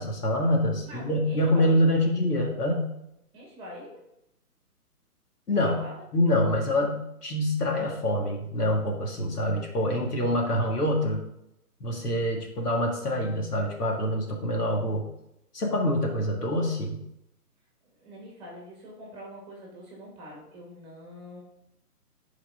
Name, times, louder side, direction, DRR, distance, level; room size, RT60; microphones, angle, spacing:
voice 1, 0.0-2.9 5.5-5.8 6.1-11.2 11.8-15.1 15.5-17.0, left 1 dB, 85° left, 1 dB, 2.1 m, -25 dB
voice 2, 0.8-1.8 3.3-4.0 5.6-6.0 17.8-21.4, equal, 10° right, -3 dB, 1.9 m, -44 dB
11.5 x 4.8 x 3.7 m, 0.82 s
hypercardioid pair, 155°, 46 cm